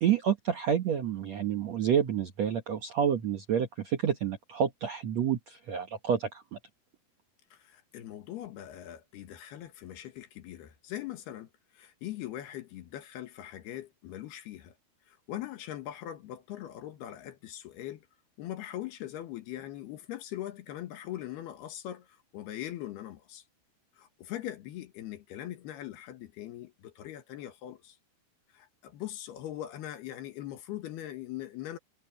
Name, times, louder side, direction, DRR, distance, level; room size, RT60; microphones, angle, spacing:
voice 1, 0.0-6.6, right 8 dB, 65° right, 1.7 m, -29 dB
voice 2, 7.5-11.5 11.7-14.7 15.1-18.1 18.4-23.4 24.0-28.0 28.5-31.8, left 13 dB, 70° left, 3.4 m, -41 dB
omnidirectional pair, 4.9 m